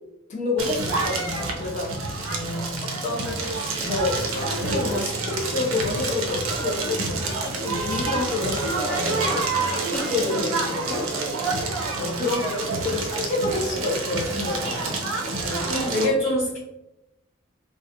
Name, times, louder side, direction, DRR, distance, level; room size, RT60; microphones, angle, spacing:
voice 1, 0.3-1.9 2.8-11.1 12.0-12.4 12.7-15.0, left 3 dB, 35° left, -1 dB, 0.3 m, -29 dB
Crackle, 0.6-16.1, right 3 dB, 85° right, 0.5 m, -27 dB
voice 2, 2.3-2.9 11.9-12.4 15.4-16.6, left 1 dB, 60° left, -9 dB, 1.0 m, -27 dB
2.7 x 2.0 x 2.4 m, 0.92 s
head